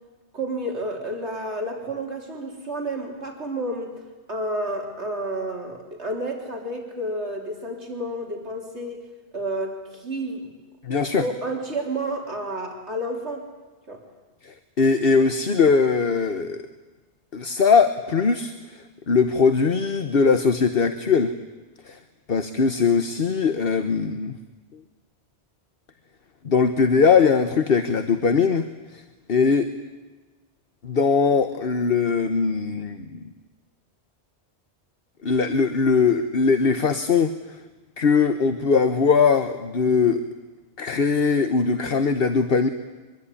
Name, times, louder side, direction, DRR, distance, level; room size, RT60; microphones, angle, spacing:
voice 1, 0.3-3.9 4.3-9.0 9.3-10.5 11.2-13.5 13.9-14.0, right 1 dB, 80° right, 2 dB, 3.8 m, -30 dB
voice 2, 10.8-11.2 14.4-16.6 17.3-18.5 19.1-21.3 21.9-22.0 22.3-24.4 26.4-28.7 28.9-29.0 29.3-29.7 30.8-33.3 35.2-37.6 38.0-40.2 40.8-42.7, left 5 dB, 60° left, 9 dB, 1.3 m, -20 dB
24.5 x 22.5 x 9.9 m, 1.2 s
omnidirectional pair, 1.1 m